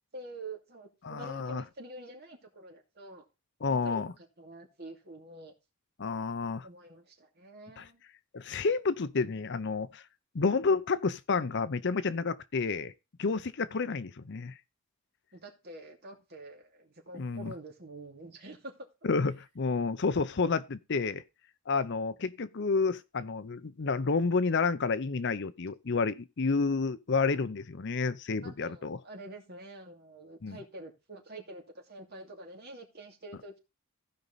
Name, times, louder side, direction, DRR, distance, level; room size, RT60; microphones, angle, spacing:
voice 1, 0.1-3.2 3.8-5.5 6.6-8.0 15.3-18.7 28.4-33.6, right 2 dB, 50° right, 2.7 m, -47 dB
voice 2, 1.0-1.6 3.6-4.1 6.0-6.7 7.8-7.9 8.3-10.0 10.3-12.9 13.2-14.5 17.1-17.5 19.0-21.2 21.7-29.0 30.4-30.6, left 4 dB, 55° left, 0.6 m, -30 dB
15.5 x 5.3 x 4.0 m
head